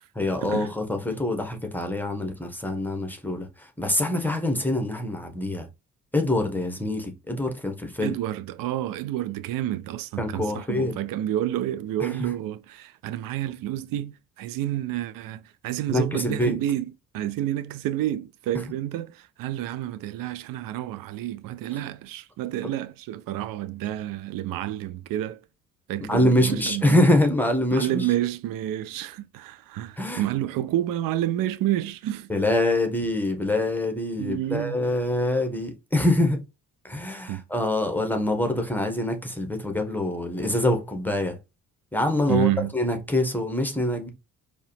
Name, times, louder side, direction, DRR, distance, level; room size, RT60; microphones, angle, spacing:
voice 1, 0.1-5.7 6.1-8.2 10.2-10.9 12.0-12.3 15.9-16.6 26.1-28.1 30.0-30.3 32.3-36.4 36.8-41.4 41.9-44.1, left 1 dB, 5° left, 1.3 m, -25 dB
voice 2, 8.0-16.8 17.1-25.4 25.9-27.0 27.7-32.3 34.2-34.8 37.3-37.4 42.3-42.7, right 13 dB, 50° right, 0.6 m, -29 dB
4.6 x 3.0 x 3.2 m
hypercardioid pair, 50°, 43 cm